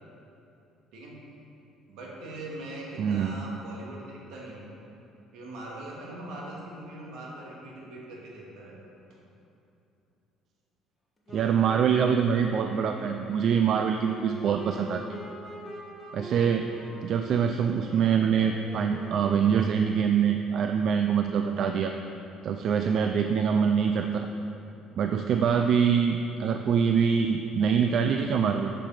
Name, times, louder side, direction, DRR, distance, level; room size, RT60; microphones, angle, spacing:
voice 1, 1.9-4.7 5.3-8.9 22.6-22.7, right 1 dB, 75° right, -3 dB, 2.1 m, -41 dB
voice 2, 3.0-3.4 11.3-15.2 16.1-16.6 17.0-21.9 22.4-24.3 25.0-28.7, right 7 dB, 50° right, 5 dB, 0.4 m, -24 dB
Wind instrument woodwind instrument, 11.3-19.7, right 1 dB, 20° left, 1.6 m, -43 dB
7.3 x 6.7 x 5.8 m, 2.8 s
cardioid pair, 135°, 0 cm